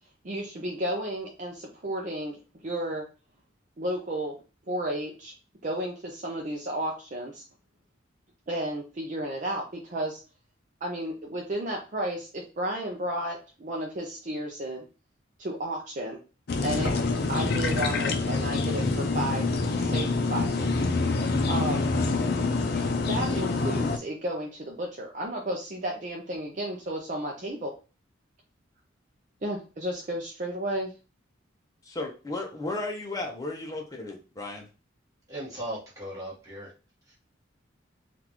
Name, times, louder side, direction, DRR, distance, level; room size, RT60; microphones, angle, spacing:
voice 1, 0.2-2.4 2.6-3.0 3.8-4.4 4.7-5.3 5.6-7.4 8.5-10.2 10.8-14.8 15.4-16.2 16.6-17.0 17.3-19.4 19.8-20.9 21.5-21.9 23.1-27.7 29.4-30.9, right 1 dB, 40° right, -1 dB, 0.6 m, -32 dB
sound 1, 16.5-24.0, left 3 dB, 55° left, 0.5 m, -26 dB
voice 2, 32.0-34.7, left 2 dB, 20° left, 1 dB, 0.7 m, -34 dB
voice 3, 35.3-36.7, right 1 dB, 20° right, -6 dB, 1.3 m, -37 dB
3.7 x 2.5 x 2.9 m, 0.33 s
head